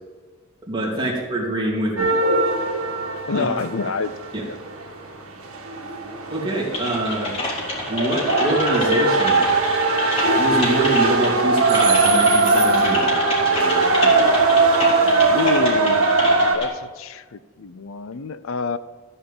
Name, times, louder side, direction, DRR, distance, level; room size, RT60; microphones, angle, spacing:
voice 1, 0.7-2.1 3.3-3.5 4.3-4.4 6.3-7.3 7.9-9.5 10.3-13.1, right 2 dB, 20° right, -4 dB, 3.1 m, -25 dB
sound 1, 2.0-16.6, right 3 dB, 70° right, 1.9 m, -20 dB
voice 2, 3.3-4.2 4.4-4.6 15.3-16.2 16.5-18.8, left 4 dB, 65° left, 14 dB, 0.6 m, -27 dB
Typing, 6.7-16.6, left 2 dB, 30° left, 3.7 m, -29 dB
14.5 x 5.6 x 8.6 m, 1.4 s
head